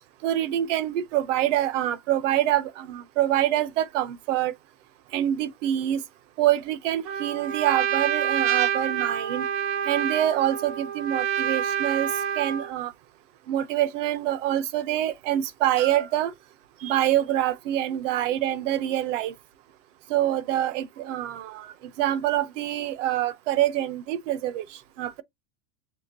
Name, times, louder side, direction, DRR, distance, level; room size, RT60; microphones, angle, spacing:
voice 1, 0.2-4.5 5.1-6.0 6.4-9.5 9.8-12.9 13.5-16.3 16.8-19.3 20.1-25.2, right 12 dB, 55° right, 0.7 m, -26 dB
Trumpet, 7.0-12.7, right 9 dB, 30° right, 0.4 m, -27 dB
6.9 x 2.8 x 2.6 m
supercardioid pair, 155°, 45 cm